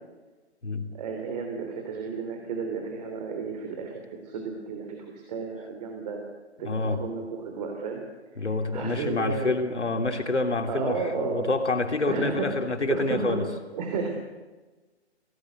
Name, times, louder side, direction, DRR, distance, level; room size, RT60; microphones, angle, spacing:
voice 1, 0.9-6.2 6.6-8.0 8.3-8.5 8.7-9.5 10.7-11.5 12.1-12.5 12.9-13.4 13.7-14.1, right 5 dB, 35° right, 3 dB, 3.3 m, -32 dB
voice 2, 6.6-7.0 8.4-13.4, left 3 dB, 80° left, 6 dB, 3.1 m, -27 dB
25.0 x 18.0 x 7.9 m, 1.2 s
figure-of-eight pair, 135°, 35 cm